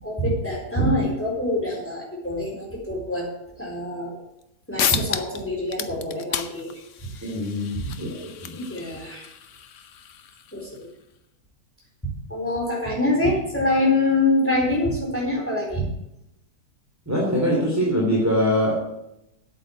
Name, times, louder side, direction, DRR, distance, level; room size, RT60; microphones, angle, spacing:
voice 1, 0.0-3.3 3.6-4.2 4.7-7.1 7.7-7.8 8.5-9.3 10.5-10.9 12.3-15.9, left 1 dB, 10° left, -2 dB, 4.1 m, -25 dB
sound 1, 4.4-4.5 4.8-5.4 5.7-10.8, left 8 dB, 60° left, 1.1 m, -31 dB
voice 2, 7.2-8.5 17.1-18.7, equal, 10° right, -4 dB, 2.8 m, -23 dB
8.8 x 8.4 x 8.7 m, 0.83 s
omnidirectional pair, 1.7 m